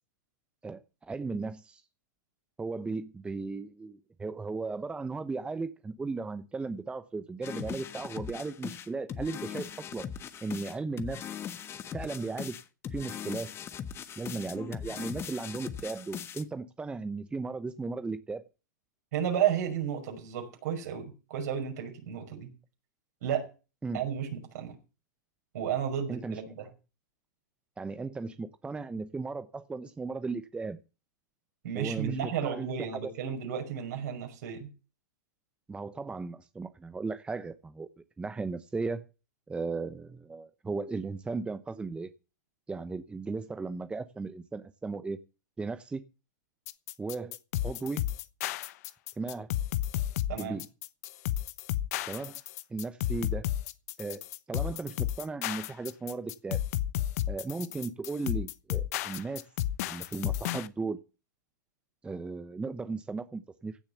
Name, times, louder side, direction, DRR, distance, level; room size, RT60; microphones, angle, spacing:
voice 1, 0.6-1.8 2.6-10.1 10.4-11.3 11.9-12.6 12.9-13.5 14.2-18.4 23.8-24.0 26.1-26.4 27.8-30.8 31.7-32.7 33.0-33.3 35.7-37.9 38.2-39.0 39.5-42.1 42.7-45.2 45.6-46.0 47.0-48.1 49.2-49.5 50.4-50.7 52.1-52.4 52.7-53.4 54.0-54.2 54.5-56.6 57.3-59.4 59.9-61.0 62.0-63.8, right 4 dB, 10° right, 0.9 m, -36 dB
sound 1, 7.4-16.4, left 8 dB, 25° left, 1.3 m, -40 dB
voice 2, 19.1-22.5 23.2-23.5 23.9-24.8 25.5-26.7 31.6-34.7 50.3-50.6, right 9 dB, 65° right, 5.7 m, -32 dB
sound 2, 46.7-60.7, left 13 dB, 60° left, 1.0 m, -32 dB
16.0 x 7.3 x 7.0 m
hypercardioid pair, 115°, 10 cm